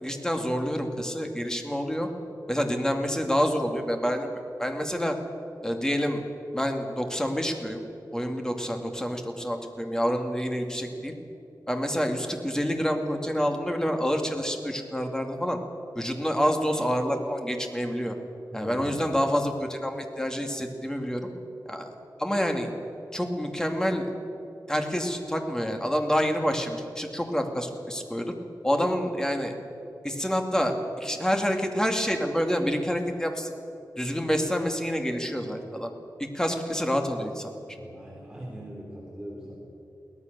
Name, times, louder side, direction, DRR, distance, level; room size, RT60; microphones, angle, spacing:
voice 1, 0.0-2.1 2.5-4.3 4.6-5.2 5.6-6.2 6.5-7.8 8.1-11.1 11.7-15.6 15.9-18.2 18.5-21.3 21.7-21.9 22.2-22.7 23.1-24.1 24.7-28.3 28.6-29.5 30.0-33.5 34.0-35.9 36.3-37.5, equal, 10° left, 4 dB, 2.3 m, -27 dB
voice 2, 18.5-18.9 37.7-39.6, right 1 dB, 10° right, -4 dB, 3.9 m, -41 dB
22.5 x 17.5 x 6.8 m, 2.8 s
wide cardioid pair, 110°, 7 cm